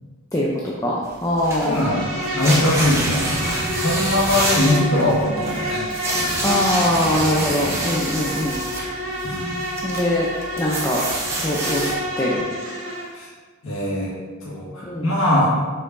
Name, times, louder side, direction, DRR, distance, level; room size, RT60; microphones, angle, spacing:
voice 1, 0.8-1.8 6.4-8.6 9.8-10.3 10.6-11.0 11.4-11.9 12.2-12.4 14.9-15.1, left 1 dB, 15° left, -4 dB, 0.5 m, -22 dB
sound 1, 1.1-8.9 9.2-11.9, right 1 dB, 15° right, 1.0 m, -27 dB
voice 2, 1.6-6.5 7.6-7.8 9.2-9.7 13.1-13.3 13.6-14.1 14.4-15.5, left 1 dB, 75° left, -6 dB, 1.6 m, -22 dB
Insect, 1.6-13.1, equal, 80° right, 1.6 m, -29 dB
6.9 x 5.5 x 2.6 m, 1.4 s
head